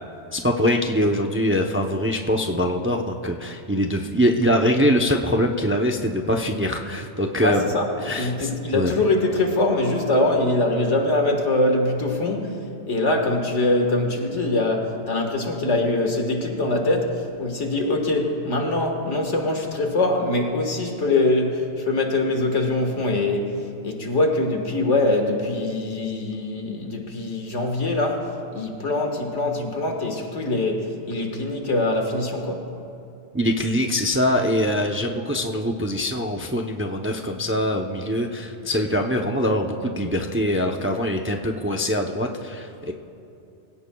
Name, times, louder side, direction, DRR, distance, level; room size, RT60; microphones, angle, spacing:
voice 1, 0.3-7.7 8.0-8.9 33.3-42.9, equal, 15° right, 2 dB, 0.5 m, -23 dB
voice 2, 7.4-7.9 8.1-32.7, left 2 dB, 80° left, 3 dB, 1.9 m, -23 dB
24.0 x 17.0 x 2.3 m, 2.6 s
omnidirectional pair, 1.2 m